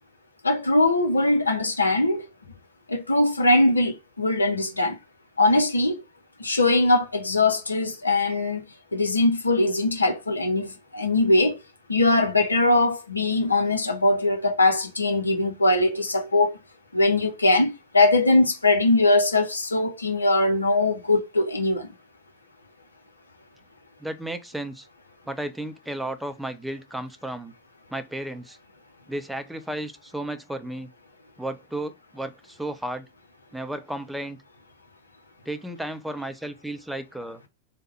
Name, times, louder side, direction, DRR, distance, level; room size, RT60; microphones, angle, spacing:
voice 1, 0.4-2.2 2.9-5.0 5.4-6.0 6.4-8.6 8.9-11.6 11.9-16.5 16.9-21.9, left 2 dB, 80° left, 0.6 m, -21 dB
voice 2, 24.0-24.9 25.3-27.5 27.9-28.6 29.1-30.9 31.4-33.1 33.5-34.4 35.5-37.4, right 1 dB, 5° right, 0.5 m, -33 dB
3.3 x 2.1 x 3.1 m
figure-of-eight pair, 90°, 0 cm